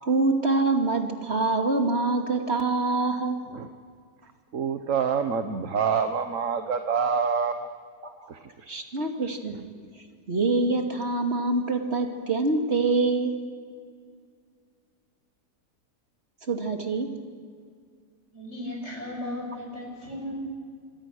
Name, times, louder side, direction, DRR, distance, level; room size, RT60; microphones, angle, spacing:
voice 1, 0.0-3.4 8.0-8.3 8.7-9.6 10.3-13.4 16.5-17.1, right 3 dB, 40° right, 3 dB, 2.7 m, -25 dB
voice 2, 4.5-7.5 8.3-8.7, right 6 dB, 55° right, 7 dB, 1.4 m, -26 dB
voice 3, 18.3-20.4, left 1 dB, 45° left, 0 dB, 7.3 m, -35 dB
26.5 x 23.5 x 6.5 m, 2.1 s
omnidirectional pair, 1.7 m